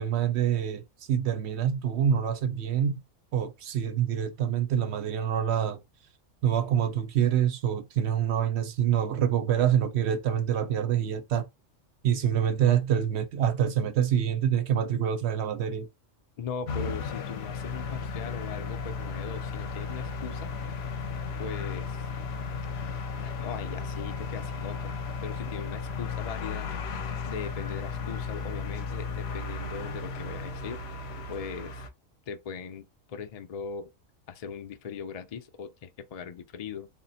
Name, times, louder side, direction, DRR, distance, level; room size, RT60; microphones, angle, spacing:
voice 1, 0.0-3.0 3.3-5.8 6.4-11.5 12.0-15.9, right 9 dB, 65° right, 0.7 m, -26 dB
voice 2, 16.4-20.5 21.4-22.0 23.2-26.7 27.3-30.8 31.3-31.8 32.3-33.9 34.3-36.9, left 6 dB, 85° left, 0.3 m, -39 dB
sound 1, 16.7-31.9, left 5 dB, 60° left, 0.8 m, -35 dB
3.6 x 2.1 x 4.0 m
omnidirectional pair, 1.4 m